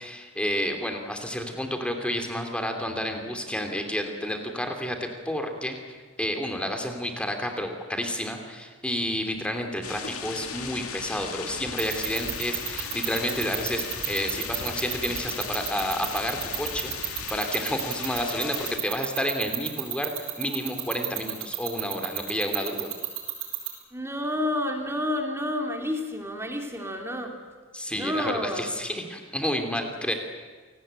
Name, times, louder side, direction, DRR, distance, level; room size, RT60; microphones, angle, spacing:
voice 1, 0.0-5.8 6.2-20.1 20.4-22.9 27.7-30.1, equal, 5° left, 5 dB, 2.9 m, -30 dB
sound 1, 9.8-18.8, left 6 dB, 75° left, 2.4 m, -37 dB
sound 2, 11.8-23.7, right 17 dB, 65° right, 6.5 m, -29 dB
voice 2, 23.9-27.3 27.9-28.7, left 1 dB, 10° right, 3 dB, 2.8 m, -30 dB
27.5 x 19.0 x 9.0 m, 1.5 s
head